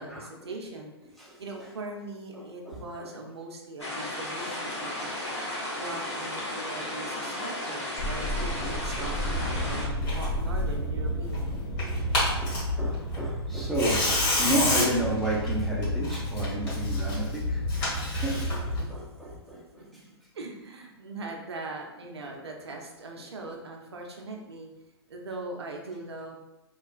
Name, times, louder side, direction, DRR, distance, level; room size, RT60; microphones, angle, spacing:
voice 1, 0.0-5.1 5.7-11.6 18.8-19.4 19.8-20.0 20.3-24.7 25.1-26.4, right 2 dB, 70° right, 0.6 m, -41 dB
voice 2, 2.3-3.1 5.9-6.0 6.5-6.6 7.3-7.4 8.6-9.1 11.8-17.7 18.0-20.0 22.3-22.4 23.4-23.5, equal, ahead, 0.4 m, -33 dB
sound 1, 3.8-9.9, left 1 dB, 80° left, 1.0 m, -34 dB
sound 2, 8.0-13.1, equal, 55° left, 0.8 m, -34 dB
Tearing, 9.2-18.8, left 1 dB, 35° left, 1.5 m, -29 dB
3.1 x 2.3 x 2.4 m
figure-of-eight pair, 110°, 14 cm